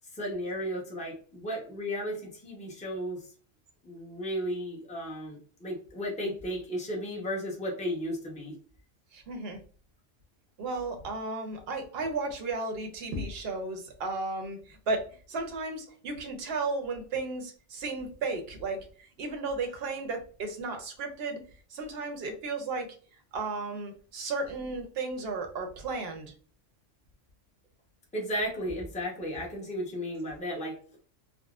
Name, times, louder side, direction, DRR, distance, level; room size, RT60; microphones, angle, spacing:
voice 1, 0.1-3.3 3.8-8.6 28.1-30.8, equal, 5° left, -2 dB, 0.7 m, -34 dB
voice 2, 9.1-9.6 10.6-21.4 21.7-22.9 23.3-26.3, right 3 dB, 60° right, 5 dB, 0.8 m, -34 dB
3.6 x 2.1 x 2.3 m, 0.41 s
omnidirectional pair, 1.3 m